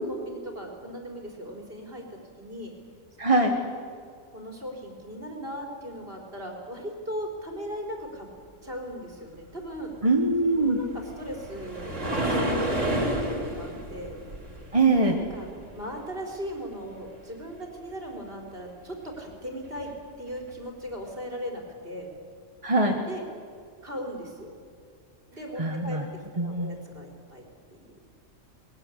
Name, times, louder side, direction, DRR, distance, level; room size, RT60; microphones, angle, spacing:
voice 1, 0.1-2.7 4.3-8.3 8.6-9.9 10.6-14.2 15.3-15.5 15.7-22.1 23.1-23.2 23.8-24.6 25.3-27.9, equal, 45° right, 1 dB, 4.3 m, -38 dB
voice 2, 3.2-3.5 10.0-10.8 14.7-15.2 22.6-23.0 25.6-26.0 26.4-26.8, right 2 dB, 25° right, 2 dB, 1.6 m, -22 dB
sound 1, 10.6-15.9 19.8-19.9 20.5-20.6, right 1 dB, 70° right, 3.9 m, -30 dB
21.5 x 20.5 x 9.9 m, 2.2 s
omnidirectional pair, 1.3 m